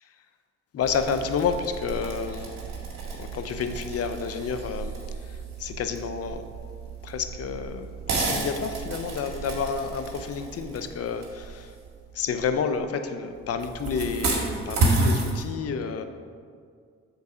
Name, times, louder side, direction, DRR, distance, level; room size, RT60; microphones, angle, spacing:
voice 1, 0.7-2.5 3.2-4.9 5.3-6.5 7.0-11.7 12.1-16.0, left 6 dB, 55° left, 8 dB, 0.6 m, -30 dB
sound 1, 0.8-12.8 13.4-15.4, right 3 dB, 70° right, 1.8 m, -31 dB
7.1 x 4.0 x 4.8 m, 2.1 s
cardioid pair, 75°, 29 cm